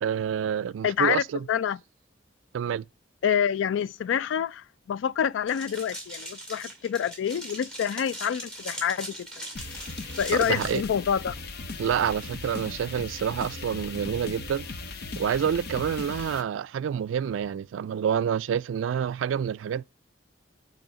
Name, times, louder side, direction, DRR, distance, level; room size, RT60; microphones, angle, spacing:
voice 1, 0.0-1.4 2.5-2.8 10.3-10.8 11.8-14.7 15.2-19.8, right 8 dB, 85° right, 0.3 m, -28 dB
voice 2, 0.8-1.8 3.2-9.3 10.2-11.3, left 8 dB, 75° left, 0.3 m, -27 dB
sound 1, 5.5-10.8, right 1 dB, 5° left, 2.1 m, -40 dB
sound 2, 9.6-16.4, left 3 dB, 55° left, 0.7 m, -38 dB
8.9 x 3.1 x 6.0 m
head